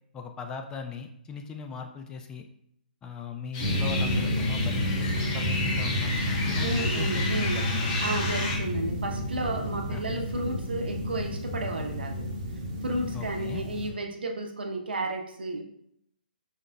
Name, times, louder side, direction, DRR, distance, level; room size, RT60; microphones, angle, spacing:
voice 1, 0.1-2.5 3.0-6.1 6.5-7.9 9.9-10.2 13.1-13.6, left 6 dB, 15° left, 4 dB, 0.3 m, -39 dB
sound 1, 3.5-8.6, left 3 dB, 30° left, 0.9 m, -33 dB
sound 2, 3.6-13.9, equal, 35° right, 0.9 m, -30 dB
voice 2, 6.6-7.6 8.0-12.3 12.8-15.6, right 2 dB, 75° right, 3 dB, 0.8 m, -32 dB
5.1 x 3.8 x 2.2 m, 0.73 s
hypercardioid pair, 145°, 5 cm